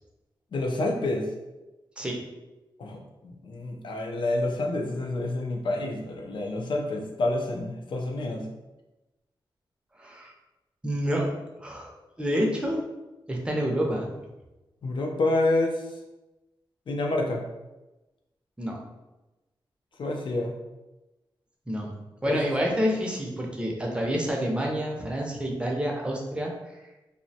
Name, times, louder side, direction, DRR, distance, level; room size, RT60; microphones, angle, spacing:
voice 1, 0.5-1.3 2.8-8.4 14.8-15.9 16.9-17.4 20.0-20.6 22.3-22.6, left 2 dB, 65° left, 2 dB, 0.4 m, -28 dB
voice 2, 10.0-10.3 10.8-11.3 11.6-12.8 13.3-14.1 18.6-18.8 21.7-21.9 22.2-26.5, equal, 10° right, -1 dB, 0.5 m, -28 dB
2.5 x 2.0 x 2.7 m, 1.0 s
wide cardioid pair, 100°, 9 cm